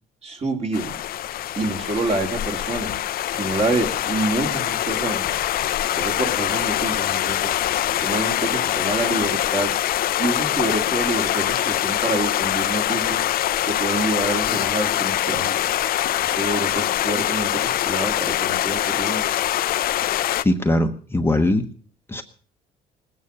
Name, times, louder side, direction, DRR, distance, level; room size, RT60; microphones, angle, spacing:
voice 1, 0.2-1.0 1.6-2.9 3.3-5.3 5.9-7.5 8.0-9.8 10.2-13.2 13.7-15.6 16.2-19.3, right 2 dB, 35° right, 3 dB, 3.3 m, -27 dB
sound 1, 0.7-20.4, left 12 dB, 60° left, 0.7 m, -24 dB
voice 2, 20.4-21.7 22.1-22.2, left 1 dB, 15° left, 5 dB, 1.1 m, -20 dB
19.5 x 9.5 x 6.8 m, 0.42 s
cardioid pair, 110°, 17 cm